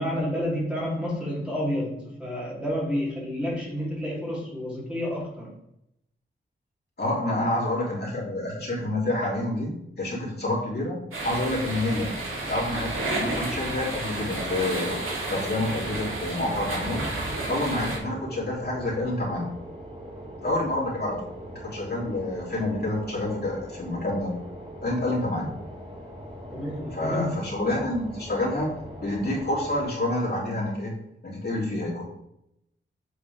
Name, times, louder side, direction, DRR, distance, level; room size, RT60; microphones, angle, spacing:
voice 1, 0.0-5.5 7.2-7.9 26.5-27.4, equal, 5° right, -6 dB, 3.5 m, -30 dB
voice 2, 7.0-12.1 12.5-17.0 17.5-19.5 20.4-21.2 21.6-24.3 24.8-25.5 26.9-28.7 29.0-32.0, left 1 dB, 50° left, -6 dB, 3.4 m, -28 dB
sound 1, 11.1-18.0, right 2 dB, 80° right, 3.0 m, -31 dB
sound 2, 14.4-29.8, equal, 30° right, 3.6 m, -41 dB
8.5 x 7.4 x 3.6 m, 0.81 s
wide cardioid pair, 105°, 21 cm